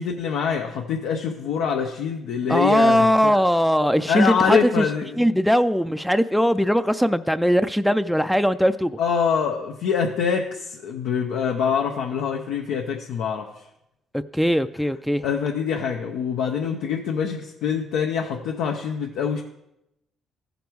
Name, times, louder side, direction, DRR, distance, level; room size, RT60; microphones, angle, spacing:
voice 1, 0.0-3.4 4.1-5.3 9.0-13.6 15.2-19.4, left 7 dB, 85° left, 1 dB, 0.8 m, -25 dB
voice 2, 2.5-4.9 5.2-9.0 14.1-15.3, equal, ahead, 11 dB, 0.3 m, -20 dB
15.0 x 5.2 x 4.6 m, 0.86 s
cardioid pair, 95°, 0 cm